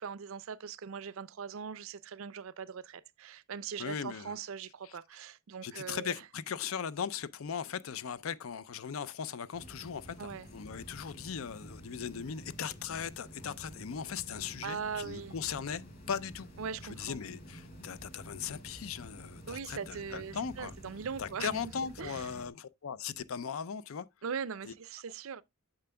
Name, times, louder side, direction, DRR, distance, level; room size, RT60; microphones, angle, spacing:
voice 1, 0.0-6.2 10.2-10.5 14.6-15.3 16.6-17.2 19.5-21.6 22.0-22.2 24.2-25.4, right 6 dB, 70° right, 0.5 m, -40 dB
voice 2, 3.8-4.4 4.8-5.0 5.6-16.5 17.0-20.7 21.2-24.1 24.7-24.8, left 7 dB, 70° left, 0.5 m, -38 dB
sound 1, 9.5-22.5, equal, 45° left, 3.3 m, -50 dB
8.7 x 6.7 x 2.2 m
head